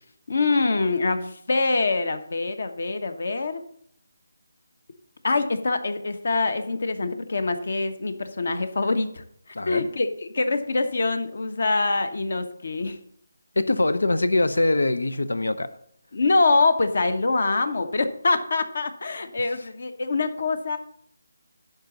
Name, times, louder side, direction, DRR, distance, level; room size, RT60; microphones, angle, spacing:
voice 1, 0.3-3.6 5.2-9.2 9.7-13.0 16.1-20.8, left 3 dB, 60° left, 1.1 m, -24 dB
voice 2, 9.5-9.9 13.6-15.7, left 2 dB, 90° left, 0.8 m, -23 dB
10.5 x 3.9 x 7.3 m
figure-of-eight pair, 165°, 0 cm